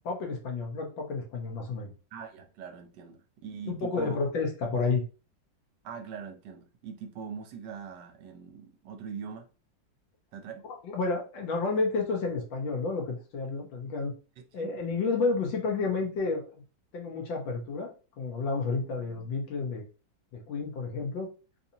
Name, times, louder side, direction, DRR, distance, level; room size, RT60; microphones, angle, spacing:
voice 1, 0.1-1.9 3.7-5.0 10.8-14.1 14.5-16.5 16.9-17.9 18.2-19.8 20.3-21.3, left 4 dB, 85° left, 1.7 m, -30 dB
voice 2, 2.1-4.2 5.8-9.5 10.3-10.6 14.6-14.7, right 6 dB, 75° right, 1.2 m, -42 dB
3.9 x 2.8 x 2.7 m
omnidirectional pair, 2.0 m